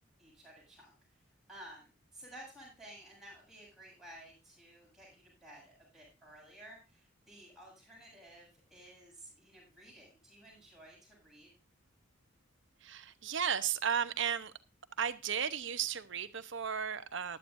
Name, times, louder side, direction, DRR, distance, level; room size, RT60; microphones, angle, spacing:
voice 1, 0.2-0.9 1.5-11.5, right 1 dB, ahead, 7.8 m, -54 dB
voice 2, 12.8-14.5 15.0-17.4, right 7 dB, 60° right, 0.8 m, -34 dB
16.0 x 11.0 x 2.6 m
head